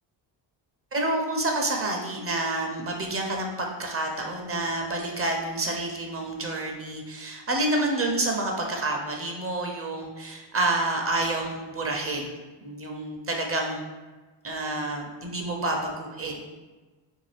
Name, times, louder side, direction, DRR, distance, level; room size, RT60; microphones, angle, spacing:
voice 1, 0.9-12.3 12.6-13.8 14.4-16.4, right 2 dB, 30° right, 1 dB, 0.5 m, -28 dB
2.7 x 2.3 x 3.3 m, 1.2 s
supercardioid pair, 60°, 50 cm